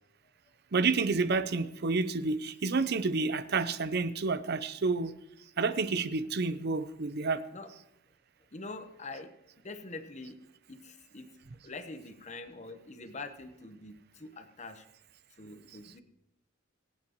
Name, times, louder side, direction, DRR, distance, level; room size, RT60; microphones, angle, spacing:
voice 1, 0.7-5.1 5.6-7.4, right 4 dB, 55° right, 13 dB, 0.6 m, -29 dB
voice 2, 8.5-9.3 9.6-10.4 10.7-11.3 11.6-14.9 15.4-16.0, left 3 dB, 35° left, 8 dB, 1.0 m, -44 dB
22.0 x 8.7 x 3.0 m, 0.86 s
head